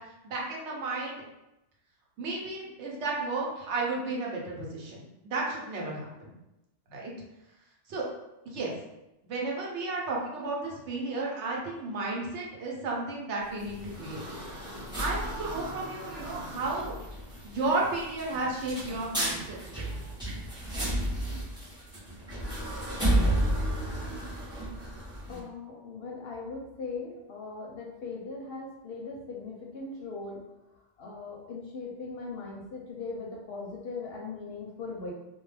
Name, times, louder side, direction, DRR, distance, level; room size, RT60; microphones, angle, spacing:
voice 1, 0.2-1.2 2.2-6.3 6.9-7.1 7.9-8.0 8.5-8.7 9.2-14.2 14.9-16.9 17.4-19.9, right 3 dB, 70° right, -3 dB, 0.9 m, -33 dB
sound 1, 13.4-25.4, right 1 dB, 5° right, 0.6 m, -33 dB
voice 2, 25.3-30.4 31.0-35.1, left 4 dB, 65° left, -2 dB, 0.7 m, -39 dB
2.3 x 2.1 x 3.2 m, 0.92 s
omnidirectional pair, 1.3 m